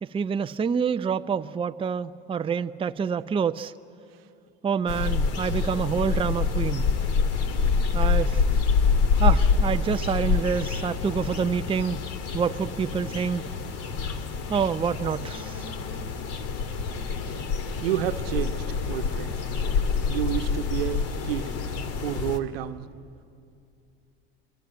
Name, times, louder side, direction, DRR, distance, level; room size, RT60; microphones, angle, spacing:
voice 1, 0.0-3.7 4.6-6.8 7.9-8.4 9.2-12.0 12.3-13.5 14.5-15.6, right 6 dB, 20° right, 9 dB, 0.6 m, -27 dB
sound 1, 4.9-22.4, left 5 dB, 55° left, 2.0 m, -26 dB
voice 2, 17.8-19.4 20.1-21.6 22.0-22.9, right 12 dB, 75° right, 9 dB, 1.1 m, -30 dB
29.0 x 23.0 x 9.0 m, 2.5 s
hypercardioid pair, 80°, 30 cm